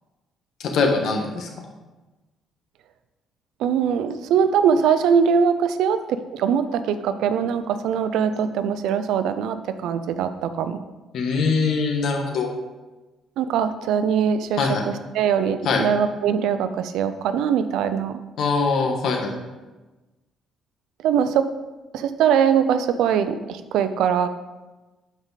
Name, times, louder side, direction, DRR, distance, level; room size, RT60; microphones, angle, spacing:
voice 1, 0.6-1.5 11.1-12.5 14.6-14.8 15.6-15.8 18.4-19.3, left 4 dB, 60° left, 2 dB, 1.4 m, -22 dB
voice 2, 3.6-10.8 13.4-18.2 21.0-21.5 21.9-24.3, right 7 dB, 75° right, 11 dB, 0.6 m, -22 dB
12.0 x 4.8 x 4.1 m, 1.2 s
cardioid pair, 140°, 0 cm